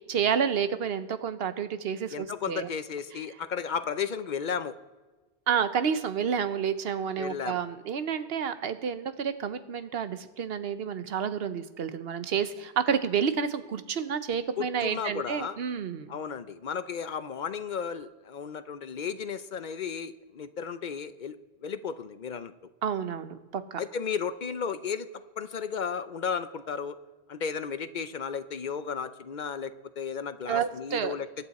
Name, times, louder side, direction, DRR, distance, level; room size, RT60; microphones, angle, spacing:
voice 1, 0.1-2.7 5.5-16.2 22.8-23.8 30.5-31.1, right 7 dB, 70° right, 11 dB, 1.0 m, -30 dB
voice 2, 2.1-4.7 7.2-7.6 14.6-15.6 16.1-21.4 21.6-22.5 23.8-25.1 25.4-27.0 27.3-31.3, left 6 dB, 55° left, 12 dB, 0.7 m, -34 dB
22.0 x 8.6 x 4.2 m, 1.3 s
omnidirectional pair, 1.1 m